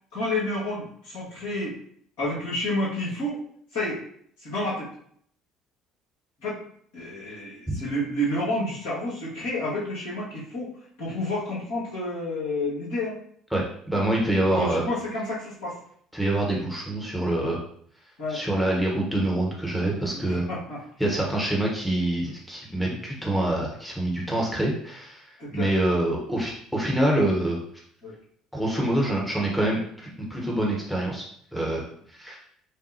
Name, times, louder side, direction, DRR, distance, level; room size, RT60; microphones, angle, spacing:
voice 1, 0.1-1.8 2.2-3.4 3.7-4.0 4.4-4.9 6.4-6.6 6.9-10.7 11.0-13.2 14.5-15.8 18.2-18.4 20.1-20.8 22.8-23.0 25.4-25.7 28.0-28.1, left 1 dB, 65° left, -7 dB, 1.7 m, -30 dB
voice 2, 13.5-14.9 16.1-17.6 18.3-20.5 21.0-27.6 28.5-31.2 31.5-31.9 32.2-32.4, right 1 dB, 5° left, -2 dB, 1.0 m, -26 dB
6.0 x 2.2 x 2.7 m, 0.63 s
figure-of-eight pair, 55°, 0 cm